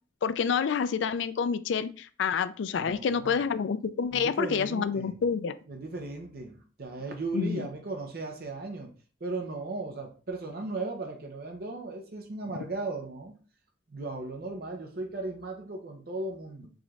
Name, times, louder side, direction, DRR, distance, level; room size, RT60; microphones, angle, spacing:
voice 1, 0.2-5.5 7.3-7.7, left 6 dB, 75° left, 13 dB, 0.3 m, -28 dB
voice 2, 2.7-3.4 4.1-5.2 5.7-8.9 9.2-13.3 13.9-16.7, right 2 dB, 50° right, 2 dB, 0.7 m, -36 dB
4.8 x 3.0 x 2.4 m, 0.38 s
head